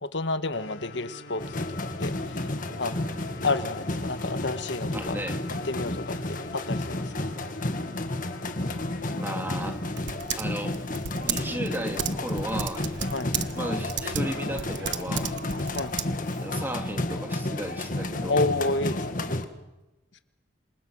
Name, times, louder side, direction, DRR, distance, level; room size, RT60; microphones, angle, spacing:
voice 1, 0.0-2.5 2.8-3.0 3.4-5.2 5.6-7.3 13.1-13.3 15.7-15.9 18.3-19.2, left 3 dB, 65° left, 11 dB, 1.3 m, -30 dB
sound 1, 0.5-11.5, left 2 dB, 85° left, 2.7 m, -45 dB
sound 2, 1.4-19.4, left 2 dB, 45° left, 1.8 m, -32 dB
voice 2, 4.9-5.4 9.1-9.8 10.4-10.8 11.3-12.8 13.5-15.3 15.6-15.7 16.4-18.5, right 1 dB, 10° right, 5 dB, 2.2 m, -34 dB
Typing, 9.0-16.5, right 8 dB, 70° right, 1.2 m, -35 dB
27.0 x 27.0 x 6.2 m, 1.0 s
head